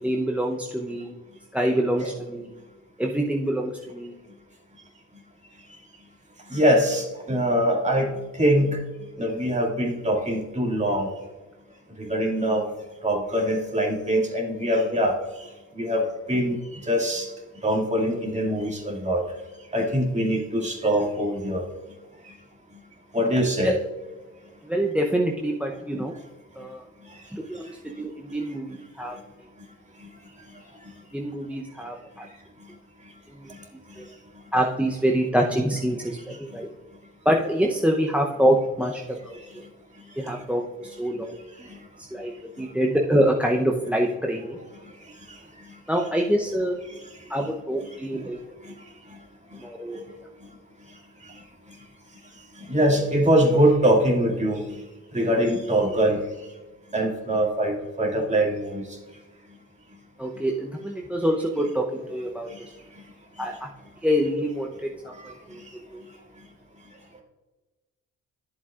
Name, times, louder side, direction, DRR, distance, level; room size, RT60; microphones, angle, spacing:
voice 1, 0.0-1.1 1.5-2.5 3.0-4.1 23.6-23.7 24.6-26.1 26.6-26.8 27.3-29.2 31.1-32.3 33.4-33.5 34.0-34.1 34.5-36.7 37.2-39.4 40.2-41.7 42.1-42.3 42.6-44.6 45.9-46.8 47.3-48.4 49.6-50.0 60.2-62.5 63.4-63.7 64.0-64.7 65.5-65.6 65.9-66.0, equal, 5° right, 1 dB, 0.7 m, -25 dB
voice 2, 6.5-8.8 9.2-11.1 12.0-12.7 13.0-17.3 17.6-19.2 19.7-21.6 22.2-22.4 23.1-23.8 27.0-27.2 27.5-27.7 30.0-30.1 30.5-30.9 32.2-32.3 32.6-32.7 33.0-33.1 33.5-34.1 36.3-36.4 39.3-39.6 40.1-40.3 41.6-41.8 42.6-42.7 45.2-45.8 46.9-47.1 47.3-47.4 47.8-48.3 48.6-48.7 49.1-49.2 49.5-49.7 49.9-50.0 51.2-51.4 51.7-51.8 52.5-54.8 55.1-56.2 56.9-59.0 62.5-62.7 62.9-63.0 63.4-63.6 65.0-65.6, right 1 dB, 25° right, 0 dB, 2.2 m, -24 dB
11.5 x 7.4 x 2.4 m, 1.2 s
cardioid pair, 90°, 30 cm